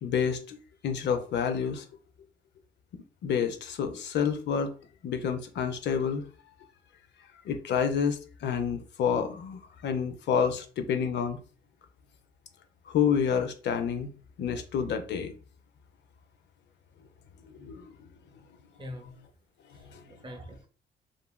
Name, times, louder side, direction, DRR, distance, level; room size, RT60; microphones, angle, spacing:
voice 1, 0.0-1.8 2.9-4.7 5.0-6.2 7.5-11.4 12.9-14.1 14.4-15.3 17.5-17.9 19.9-20.0, left 7 dB, 65° left, 0.4 m, -29 dB
voice 2, 18.8-19.2 19.7-20.7, equal, 25° right, 0.6 m, -44 dB
2.9 x 2.4 x 2.2 m
cardioid pair, 90°, 20 cm